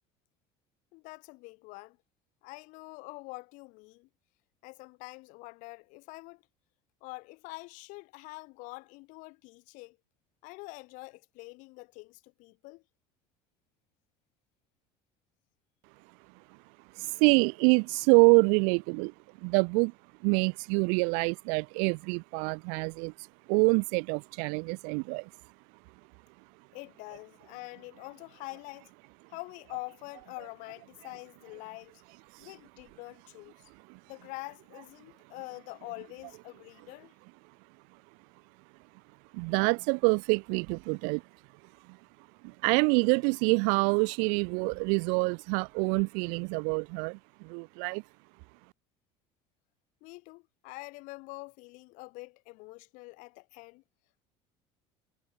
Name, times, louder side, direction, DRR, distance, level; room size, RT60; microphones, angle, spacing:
voice 1, 0.9-2.0 2.4-4.1 4.6-6.4 7.0-10.0 10.4-12.8 26.7-28.9 29.3-32.0 32.4-33.7 34.1-37.1 50.0-53.8, left 25 dB, 70° left, 3.0 m, -45 dB
voice 2, 17.0-19.1 19.4-19.9 20.2-23.1 23.5-25.3 33.9-34.0 39.3-41.2 42.4-48.0, right 40 dB or more, 75° right, 0.7 m, -26 dB
supercardioid pair, 100°, 14 cm